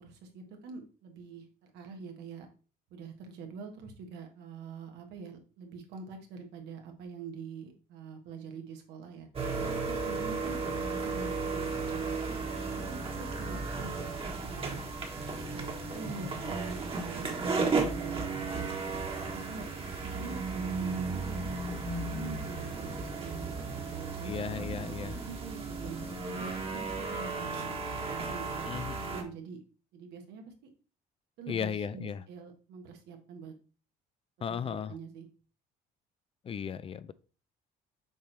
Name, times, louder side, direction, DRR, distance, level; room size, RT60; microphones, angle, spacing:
voice 1, 0.0-2.5 2.9-9.3 9.8-14.8 15.5-18.7 19.3-19.7 20.0-21.4 22.0-27.8 28.0-28.7 29.0-29.6 29.9-30.7 31.4-33.5 34.6-35.3, right 5 dB, 85° right, 1.5 m, -45 dB
sound 1, 9.3-29.2, right 3 dB, 35° right, 1.4 m, -35 dB
voice 2, 24.2-25.1 28.6-29.0 31.5-32.2 34.4-34.9 36.4-37.1, left 7 dB, 35° left, 0.4 m, -35 dB
6.9 x 4.4 x 3.3 m
cardioid pair, 110°, 17 cm